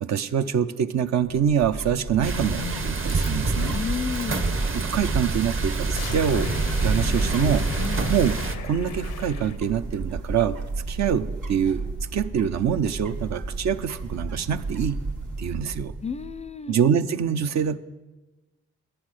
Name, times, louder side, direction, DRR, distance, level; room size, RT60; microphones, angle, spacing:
voice 1, 0.0-3.8 4.7-6.5 6.8-7.7 8.1-8.3 8.6-10.6 10.9-11.9 12.1-15.0 15.4-15.9 16.7-17.8, right 8 dB, 60° right, 10 dB, 0.6 m, -25 dB
sound 1, 1.2-16.5, right 3 dB, 90° right, 1.3 m, -32 dB
sound 2, 2.2-9.6, left 8 dB, 85° left, 0.7 m, -37 dB
sound 3, 2.2-8.6, right 3 dB, 45° right, 1.0 m, -28 dB
voice 2, 3.7-4.5 7.8-8.2 16.0-16.8, left 6 dB, 20° left, 16 dB, 0.4 m, -32 dB
10.0 x 7.6 x 6.3 m, 1.1 s
supercardioid pair, 40°, 30 cm